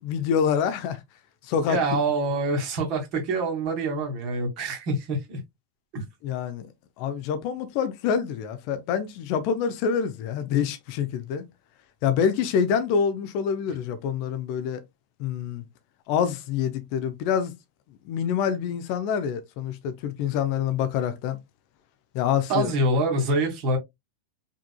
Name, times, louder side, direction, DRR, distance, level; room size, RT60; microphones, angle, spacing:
voice 1, 0.0-1.0 1.4-2.0 6.2-6.7 7.0-11.4 12.0-14.8 15.2-15.6 16.1-17.5 18.1-21.4 22.1-22.7, left 7 dB, 45° left, 0.8 m, -26 dB
voice 2, 1.7-5.4 5.9-6.0 22.5-23.8, right 2 dB, 40° right, 2.2 m, -25 dB
5.2 x 4.1 x 2.2 m
figure-of-eight pair, 90°, 0 cm